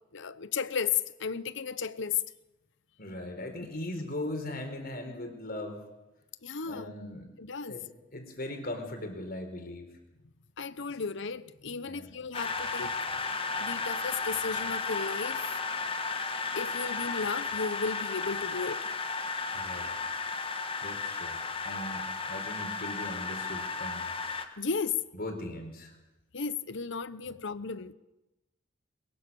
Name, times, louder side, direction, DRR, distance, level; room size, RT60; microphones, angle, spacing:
voice 1, 0.1-2.2 6.4-6.9 7.4-7.8 10.6-13.0 13.6-15.6 16.6-18.9 24.6-25.0 26.3-27.9, left 5 dB, 65° left, 0.9 m, -34 dB
voice 2, 3.0-5.9 6.6-7.3 7.7-9.9 11.8-12.1 13.4-13.5 19.5-19.9 20.8-21.4 21.6-24.1 25.1-26.0 27.3-27.4, left 1 dB, 50° left, 4.4 m, -39 dB
sound 1, 12.3-24.4, left 4 dB, 30° left, 1.8 m, -34 dB
22.5 x 21.5 x 7.0 m
head